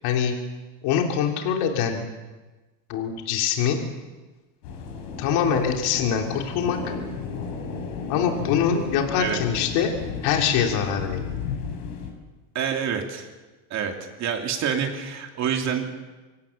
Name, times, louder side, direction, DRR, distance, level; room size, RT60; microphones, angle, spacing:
voice 1, 0.0-0.3 0.8-2.1 2.9-3.8 5.2-6.9 8.1-9.9 10.2-11.4, left 8 dB, 55° left, 2 dB, 3.0 m, -24 dB
sound 1, 4.6-12.1, left 5 dB, 75° left, 5.8 m, -33 dB
voice 2, 12.5-13.3 13.7-13.9 14.2-15.9, right 7 dB, 35° right, 3 dB, 2.8 m, -27 dB
24.5 x 17.5 x 7.1 m, 1.2 s
supercardioid pair, 150°, 46 cm